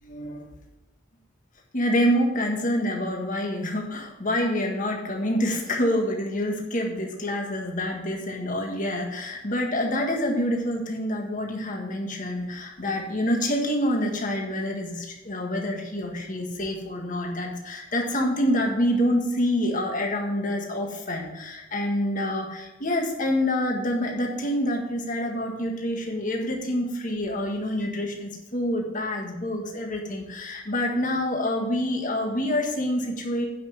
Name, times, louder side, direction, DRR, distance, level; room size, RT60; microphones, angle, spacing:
voice 1, 0.0-0.5 1.7-33.5, left 1 dB, 45° left, 1 dB, 1.6 m, -27 dB
9.5 x 5.8 x 5.7 m, 1.0 s
head